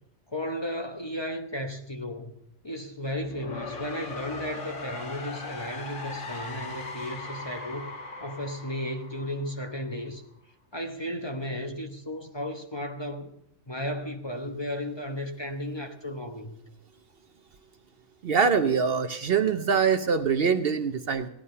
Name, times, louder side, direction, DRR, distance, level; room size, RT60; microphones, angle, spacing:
voice 1, 0.3-2.3 2.6-7.9 8.2-10.2 10.7-13.4 13.7-16.6, left 1 dB, 25° left, 1.0 m, -34 dB
sound 1, 3.1-10.1, left 3 dB, 85° left, 2.0 m, -39 dB
voice 2, 18.2-21.3, right 6 dB, 55° right, 0.9 m, -24 dB
16.0 x 11.0 x 5.5 m
omnidirectional pair, 1.2 m